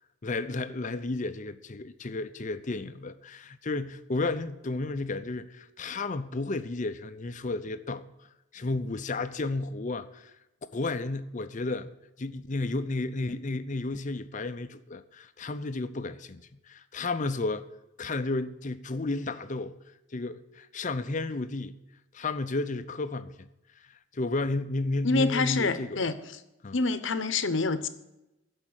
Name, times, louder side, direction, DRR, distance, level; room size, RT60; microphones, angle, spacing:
voice 1, 0.2-8.0 8.5-10.3 10.7-11.9 12.2-17.7 18.0-19.7 20.1-21.8 22.1-23.5 23.8-23.9 24.1-26.1 26.6-26.8, left 2 dB, 40° left, 0.6 m, -32 dB
voice 2, 25.0-26.2 26.7-27.9, left 3 dB, 65° left, 0.9 m, -27 dB
13.0 x 5.4 x 9.0 m
head